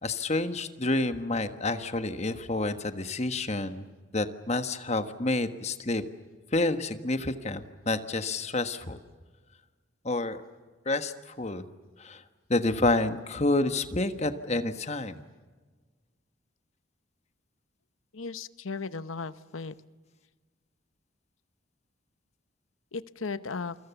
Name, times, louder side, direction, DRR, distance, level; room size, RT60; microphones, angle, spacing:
voice 1, 0.0-3.8 4.1-6.0 6.5-9.0 10.0-10.4 10.8-11.6 12.0-12.2 12.5-15.2, left 2 dB, 35° left, 9 dB, 1.4 m, -29 dB
voice 2, 18.1-19.7 22.9-23.8, left 4 dB, 85° left, 14 dB, 0.9 m, -36 dB
28.5 x 24.5 x 7.1 m, 1.4 s
head